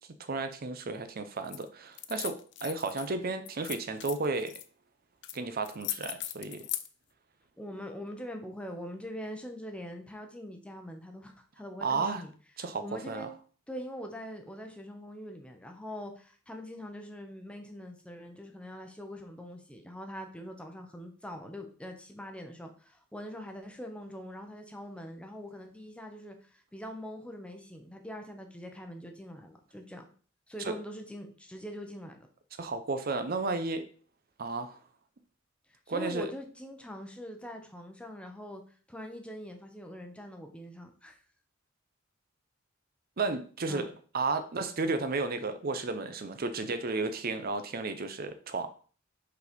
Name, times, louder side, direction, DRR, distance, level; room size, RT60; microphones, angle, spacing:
voice 1, 0.2-4.5 5.3-6.7 11.8-12.2 12.6-13.3 30.6-30.8 32.6-33.8 34.4-34.8 35.9-36.3 43.2-48.7, right 3 dB, 45° right, 9 dB, 0.6 m, -33 dB
sound 1, 1.4-1.6 1.9-3.1 3.5-4.6 5.2-5.4 5.6-6.9, left 14 dB, 60° left, 0.5 m, -38 dB
voice 2, 7.6-12.3 12.8-13.3 13.7-30.0 30.5-32.2 35.7-38.6 38.9-41.2 43.7-43.9, equal, 5° left, 4 dB, 0.8 m, -43 dB
5.5 x 4.1 x 5.2 m, 0.41 s
head